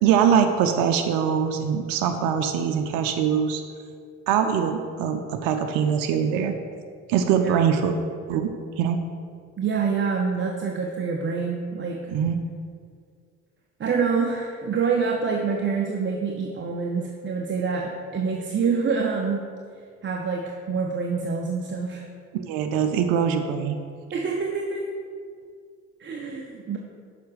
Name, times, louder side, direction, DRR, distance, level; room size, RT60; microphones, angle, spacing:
voice 1, 0.0-3.6 4.3-6.5 7.1-8.0 8.3-8.5 8.8-9.0 12.1-12.4 22.3-23.8, right 8 dB, 65° right, 6 dB, 0.6 m, -22 dB
voice 2, 9.6-12.0 13.8-19.5 20.0-22.0 24.1-24.9 26.0-26.8, right 5 dB, 30° right, 0 dB, 0.8 m, -26 dB
6.8 x 4.9 x 4.9 m, 2.1 s
hypercardioid pair, 55°, 37 cm